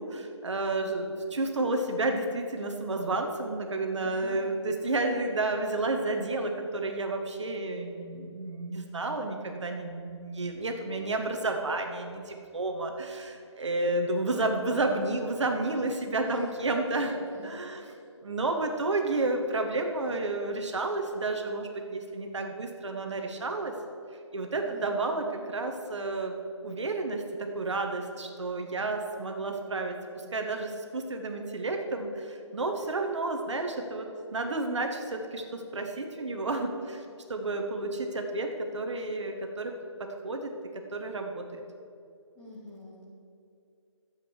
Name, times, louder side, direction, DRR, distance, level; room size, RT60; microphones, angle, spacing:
voice 1, 0.0-17.2 17.4-17.8 18.2-23.7 24.3-37.0 37.3-40.5 40.9-41.6, right 2 dB, 65° right, 4 dB, 1.5 m, -31 dB
voice 2, 4.0-4.5 16.3-18.0 24.6-25.5 42.3-43.0, left 1 dB, 15° left, -7 dB, 2.7 m, -46 dB
12.0 x 7.8 x 6.4 m, 2.6 s
figure-of-eight pair, 165°, 16 cm